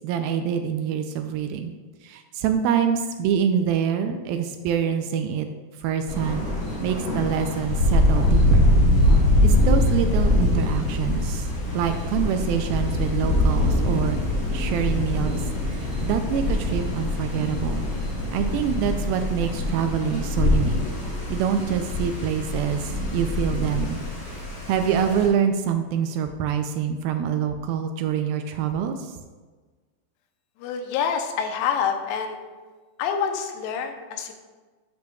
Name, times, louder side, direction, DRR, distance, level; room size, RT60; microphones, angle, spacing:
voice 1, 0.0-1.7 2.0-5.5 5.8-6.5 6.8-8.6 9.4-11.5 11.7-14.2 14.5-17.9 18.3-20.8 21.3-24.0 24.3-24.4 24.7-29.1, right 8 dB, 85° right, 6 dB, 2.1 m, -26 dB
Thunder, 6.1-25.3, left 1 dB, 30° left, 1.9 m, -23 dB
voice 2, 30.6-32.4 33.0-34.3, left 7 dB, 90° left, 5 dB, 2.8 m, -27 dB
13.0 x 6.7 x 2.3 m, 1.3 s
omnidirectional pair, 4.6 m